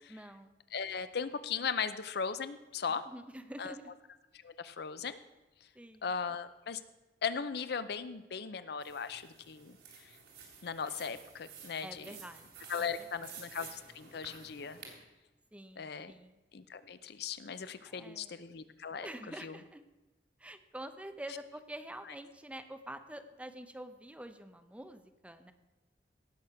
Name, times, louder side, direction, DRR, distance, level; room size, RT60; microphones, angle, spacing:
voice 1, 0.1-0.5 2.9-4.0 5.7-6.1 11.8-13.3 15.5-16.4 17.8-18.5 19.0-19.8 20.4-25.5, right 1 dB, 5° right, 8 dB, 0.7 m, -47 dB
voice 2, 0.7-3.1 3.6-3.8 4.4-5.2 6.0-6.8 7.2-10.2 10.6-12.2 12.7-14.8 15.8-16.1 16.5-19.1 19.4-19.6, left 6 dB, 65° left, 13 dB, 0.6 m, -38 dB
sound 1, 8.8-14.9, right 6 dB, 80° right, 3.3 m, -52 dB
17.5 x 6.5 x 5.8 m, 1.1 s
head